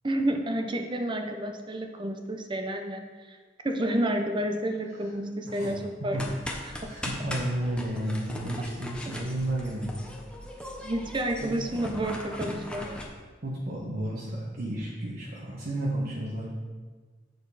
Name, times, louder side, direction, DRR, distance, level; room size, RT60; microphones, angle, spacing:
voice 1, 0.0-3.4 3.6-6.2 6.7-6.9 9.1-9.2 10.8-12.9, right 1 dB, 25° right, 5 dB, 0.7 m, -30 dB
voice 2, 5.4-5.8 6.1-6.2 6.9-10.0 11.4-11.9 13.4-16.5, right 1 dB, 55° right, -5 dB, 1.2 m, -32 dB
sound 1, 6.1-13.0, left 1 dB, 5° left, 1.0 m, -39 dB
8.0 x 6.8 x 4.1 m, 1.4 s
head